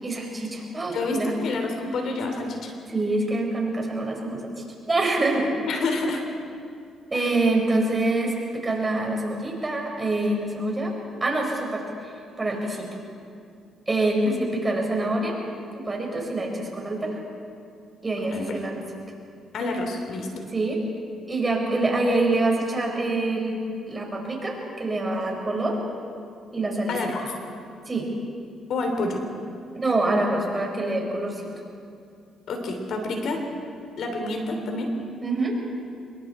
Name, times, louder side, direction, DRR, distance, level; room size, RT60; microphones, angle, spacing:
voice 1, 0.0-1.3 2.9-4.5 4.9-5.5 7.1-10.9 11.2-11.8 12.4-12.9 13.9-15.4 15.7-17.1 18.0-18.8 20.5-20.8 21.3-23.6 23.9-25.8 26.5-27.0 27.9-28.1 29.7-31.5 35.2-35.5, right 2 dB, 25° right, 0 dB, 5.0 m, -25 dB
voice 2, 0.9-2.7 5.7-6.2 7.1-7.4 14.2-14.3 18.2-18.6 19.5-20.5 26.9-27.2 28.7-29.2 32.5-33.4 34.0-34.9, left 2 dB, 70° left, 3 dB, 3.3 m, -28 dB
26.0 x 22.5 x 4.4 m, 2.4 s
cardioid pair, 90°, 0 cm